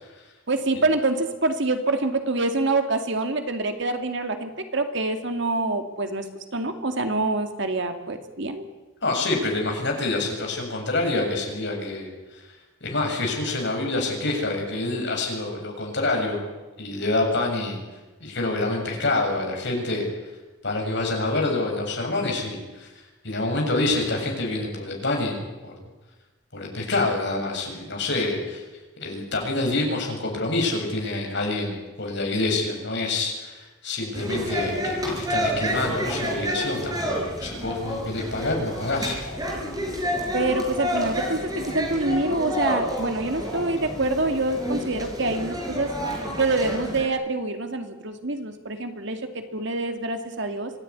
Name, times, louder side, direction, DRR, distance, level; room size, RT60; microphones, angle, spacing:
voice 1, 0.5-6.2 6.5-8.7 40.3-45.9 46.4-50.7, right 2 dB, 60° right, 6 dB, 2.4 m, -26 dB
voice 2, 9.0-16.4 16.8-17.8 18.2-20.1 20.6-22.9 23.2-25.4 25.6-25.8 26.5-28.6 29.0-39.1, left 2 dB, 55° left, 1 dB, 7.0 m, -27 dB
sound 1, 34.1-47.1, equal, 20° right, 5.6 m, -29 dB
sound 2, 38.8-45.1, left 2 dB, 80° left, 7.1 m, -41 dB
25.5 x 17.0 x 9.7 m, 1.2 s
head